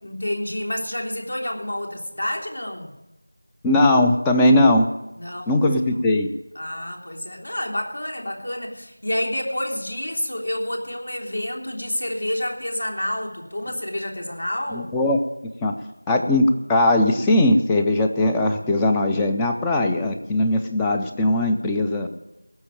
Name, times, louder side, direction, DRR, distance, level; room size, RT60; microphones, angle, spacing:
voice 1, 0.0-2.9 5.2-6.1 6.5-14.9, left 1 dB, 70° left, 1 dB, 3.4 m, -29 dB
voice 2, 3.6-4.9 5.5-6.3 14.7-15.2 15.6-15.7 16.1-22.1, left 1 dB, 5° left, 3 dB, 0.4 m, -19 dB
18.5 x 6.7 x 8.8 m, 0.95 s
figure-of-eight pair, 175°, 0 cm